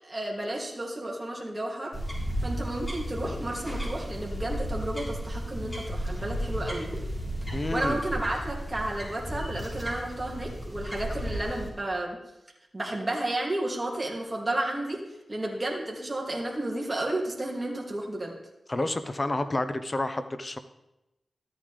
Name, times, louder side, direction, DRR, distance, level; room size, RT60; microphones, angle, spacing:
voice 1, 0.0-1.9 2.4-6.9 7.7-12.2 12.7-15.0 15.3-18.3, right 1 dB, 30° right, -1 dB, 2.6 m, -32 dB
sound 1, 1.9-11.7, equal, 15° left, 4.0 m, -34 dB
voice 2, 7.5-8.0 18.7-20.6, left 2 dB, 40° left, 10 dB, 0.9 m, -29 dB
13.5 x 8.9 x 3.4 m, 0.92 s
cardioid pair, 45°, 0 cm